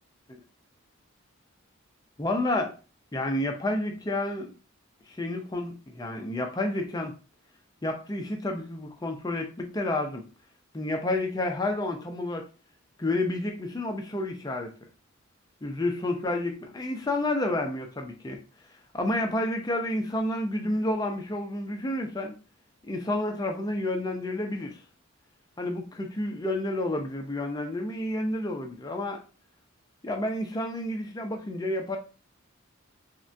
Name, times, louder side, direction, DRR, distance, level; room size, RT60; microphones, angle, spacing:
voice 1, 2.2-2.7 3.1-4.5 5.2-7.1 7.8-10.2 10.7-12.4 13.0-14.7 15.6-18.4 18.9-22.3 22.9-24.8 25.6-29.2 30.0-32.0, left 1 dB, 20° left, 0.4 m, -30 dB
3.4 x 2.1 x 2.5 m
head